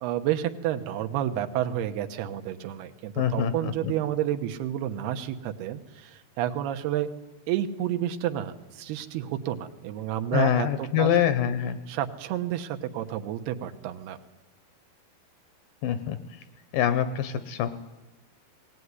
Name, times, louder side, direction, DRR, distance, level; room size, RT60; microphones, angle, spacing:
voice 1, 0.0-7.1 7.5-11.1 11.9-14.2, right 11 dB, 80° right, 6 dB, 3.1 m, -30 dB
voice 2, 3.2-3.9 10.3-11.8 15.8-16.2 16.7-17.7, left 9 dB, 70° left, 12 dB, 2.3 m, -25 dB
19.5 x 18.5 x 9.6 m, 1.0 s
omnidirectional pair, 4.5 m